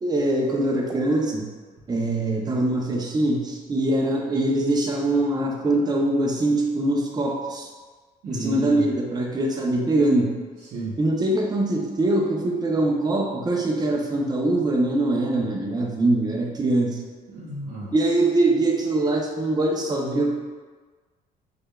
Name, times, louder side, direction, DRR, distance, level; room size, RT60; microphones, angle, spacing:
voice 1, 0.0-1.4 1.9-7.7 8.3-10.3 11.0-17.0 17.9-20.3, right 2 dB, 25° right, 0 dB, 0.5 m, -23 dB
voice 2, 8.2-8.9 10.6-11.0 17.3-18.2, right 2 dB, 65° right, -8 dB, 0.8 m, -33 dB
4.9 x 2.3 x 2.2 m, 1.4 s
cardioid pair, 110°, 17 cm